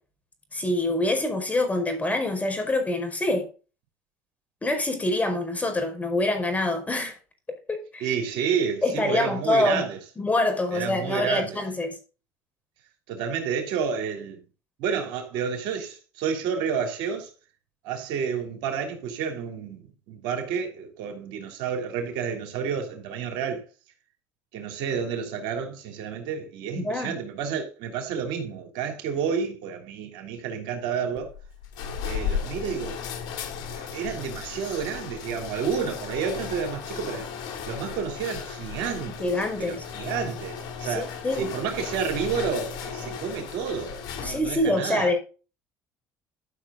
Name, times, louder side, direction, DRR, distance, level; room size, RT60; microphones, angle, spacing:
voice 1, 0.5-3.5 4.6-7.1 7.5-8.1 8.8-9.9 10.2-11.9 26.7-27.2 39.2-39.8 40.8-41.5 44.2-45.2, left 2 dB, 20° left, 5.1 m, -25 dB
voice 2, 8.0-10.0 10.7-11.6 13.1-14.4 14.8-17.3 17.8-23.6 24.5-31.3 32.0-33.0 33.7-37.3 37.6-45.1, right 7 dB, 80° right, 3.1 m, -30 dB
sound 1, 31.2-44.7, left 7 dB, 70° left, 2.8 m, -35 dB
13.0 x 6.6 x 3.8 m
supercardioid pair, 85°, 7 cm